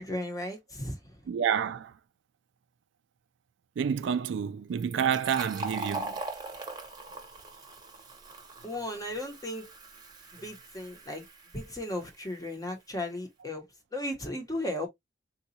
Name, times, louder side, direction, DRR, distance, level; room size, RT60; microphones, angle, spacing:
voice 1, 0.0-1.3 8.6-9.7 10.3-11.3 11.5-13.7 13.9-14.9, left 1 dB, 20° left, 0.9 m, -35 dB
voice 2, 1.3-1.9 3.8-6.2, right 7 dB, 70° right, 0.3 m, -29 dB
Fill (with liquid), 4.8-12.2, right 2 dB, 20° right, 0.9 m, -41 dB
3.9 x 2.3 x 2.7 m
head